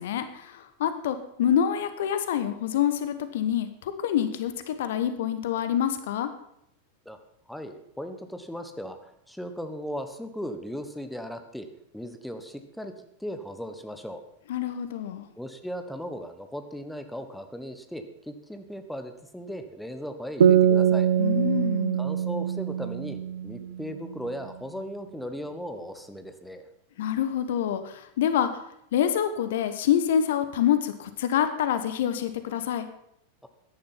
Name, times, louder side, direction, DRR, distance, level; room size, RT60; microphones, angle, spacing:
voice 1, 0.0-6.3 14.5-15.3 21.2-22.0 27.0-28.6 28.9-32.8, left 9 dB, 55° left, 11 dB, 1.2 m, -26 dB
voice 2, 7.5-11.7 11.9-12.9 13.2-14.2 15.4-21.1 22.0-26.7 33.4-33.5, equal, ahead, 7 dB, 1.3 m, -37 dB
sound 1, 20.4-23.9, right 9 dB, 65° right, 0.8 m, -23 dB
14.5 x 10.5 x 5.8 m, 0.74 s
figure-of-eight pair, 90°, 0 cm